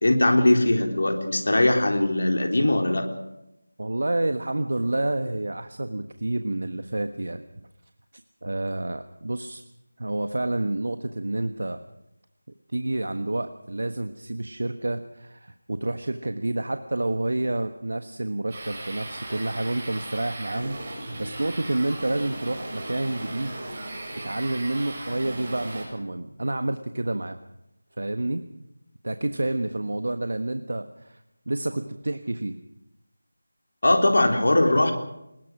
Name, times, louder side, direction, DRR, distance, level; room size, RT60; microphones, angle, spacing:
voice 1, 0.0-3.1 33.8-34.9, left 1 dB, 65° left, 3 dB, 3.8 m, -20 dB
voice 2, 3.8-7.4 8.4-9.6 10.0-11.8 12.7-23.6 24.2-27.4 28.0-28.5 29.0-31.2 31.5-32.6, right 2 dB, 70° right, 8 dB, 1.4 m, -29 dB
sound 1, 18.5-25.8, right 2 dB, 30° right, 8.0 m, -37 dB
22.5 x 20.5 x 6.3 m, 0.87 s
figure-of-eight pair, 175°, 0 cm